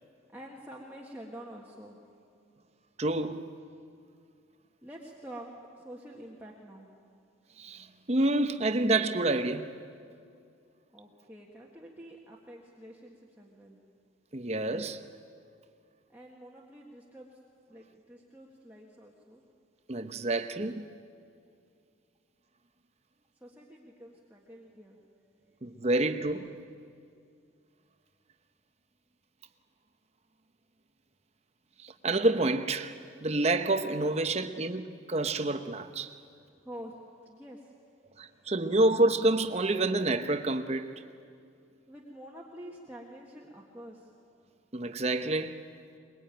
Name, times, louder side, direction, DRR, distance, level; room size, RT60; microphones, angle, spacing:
voice 1, 0.3-2.0 4.8-5.5 5.7-6.9 10.9-13.8 16.1-17.4 17.7-19.4 23.4-25.0 36.6-37.7 41.9-44.1, equal, 10° right, 1.7 m, -47 dB
voice 2, 3.0-3.5 7.6-9.8 14.3-15.0 19.9-20.9 25.6-26.6 31.8-36.2 38.2-41.0 44.7-45.7, right 2 dB, 35° right, 1.0 m, -28 dB
23.0 x 21.5 x 9.1 m
head